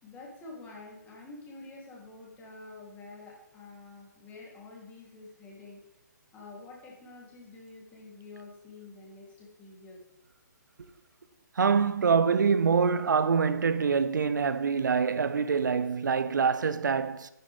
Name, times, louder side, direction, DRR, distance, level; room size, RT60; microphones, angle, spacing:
voice 1, 0.0-5.8 6.3-10.0, left 3 dB, 15° left, 3.5 m, -48 dB
voice 2, 11.6-17.3, right 6 dB, 75° right, 0.6 m, -25 dB
11.0 x 9.4 x 3.7 m
hypercardioid pair, 145°, 10 cm